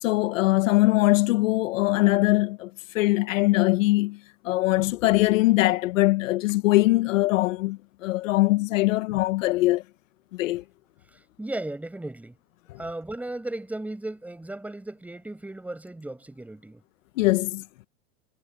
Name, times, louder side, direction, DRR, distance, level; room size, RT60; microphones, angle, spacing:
voice 1, 0.0-4.2 4.4-9.8 10.3-10.6 12.7-12.8 17.2-17.6, left 20 dB, 80° left, 1.3 m, -22 dB
voice 2, 11.4-12.4 12.8-16.8, right 2 dB, 5° right, 6.8 m, -35 dB
supercardioid pair, 165°, 39 cm